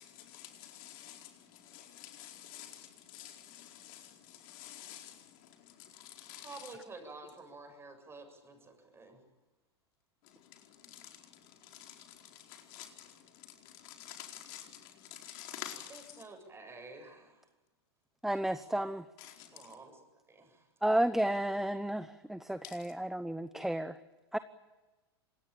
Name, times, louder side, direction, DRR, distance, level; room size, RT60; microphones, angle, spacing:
voice 1, 0.0-6.5 10.2-16.2 19.2-19.7 22.6-22.8, left 11 dB, 55° left, 4.6 m, -50 dB
voice 2, 6.4-9.2 15.9-17.4 19.5-20.0 20.3-20.7, right 3 dB, 20° right, 7.4 m, -50 dB
voice 3, 18.2-19.0 20.8-24.0 24.3-24.4, right 1 dB, ahead, 0.8 m, -32 dB
26.0 x 21.0 x 9.0 m
hypercardioid pair, 100°, 14 cm